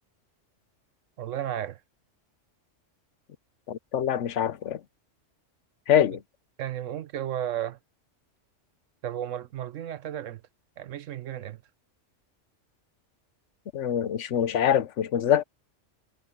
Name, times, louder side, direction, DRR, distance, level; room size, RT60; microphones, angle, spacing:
voice 1, 1.2-1.8 6.6-7.8 9.0-10.4 10.8-11.6, right 11 dB, 90° right, 1.2 m, -33 dB
voice 2, 3.7-4.8 5.9-6.2 13.7-15.4, left 10 dB, 75° left, 1.1 m, -24 dB
omnidirectional pair, 1.3 m